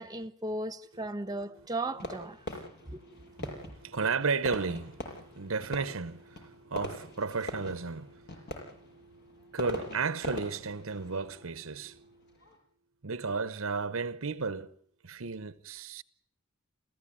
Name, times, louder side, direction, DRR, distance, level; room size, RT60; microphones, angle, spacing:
voice 1, 0.0-2.5 2.9-3.0 3.4-3.7, right 2 dB, 20° right, 1.3 m, -36 dB
Fireworks, 2.0-12.6, left 1 dB, 55° left, 6.3 m, -43 dB
voice 2, 2.5-12.3 13.0-14.7 15.0-16.0, right 4 dB, 70° right, 0.9 m, -34 dB
28.5 x 15.5 x 8.7 m
head